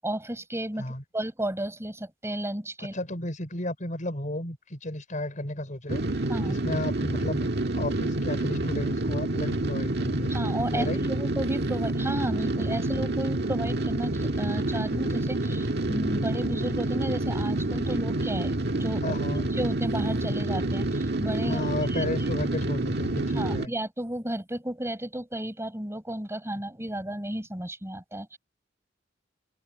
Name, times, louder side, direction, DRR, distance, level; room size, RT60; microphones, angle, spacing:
voice 1, 0.0-3.0 6.3-6.6 10.3-19.2 19.6-21.7 21.9-22.1 23.3-28.4, right 1 dB, 15° right, 7.5 m, -33 dB
voice 2, 2.8-6.0 6.5-7.5 7.7-10.3 10.7-11.0 19.0-19.5 21.4-23.7, left 1 dB, 45° left, 5.9 m, -33 dB
sound 1, 5.9-23.7, right 2 dB, 60° right, 1.8 m, -28 dB
open air
head